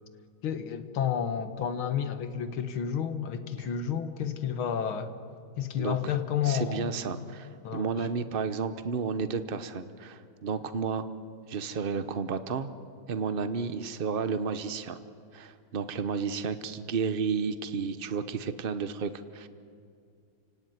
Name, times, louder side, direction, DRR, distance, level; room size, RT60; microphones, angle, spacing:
voice 1, 0.4-5.2 5.6-6.9 7.6-7.9, left 8 dB, 70° left, 10 dB, 2.2 m, -31 dB
voice 2, 5.8-6.1 6.4-11.1 11.5-12.7 13.1-15.0 15.3-19.5, right 5 dB, 80° right, 11 dB, 0.5 m, -32 dB
29.0 x 17.5 x 9.4 m, 2.4 s
omnidirectional pair, 2.4 m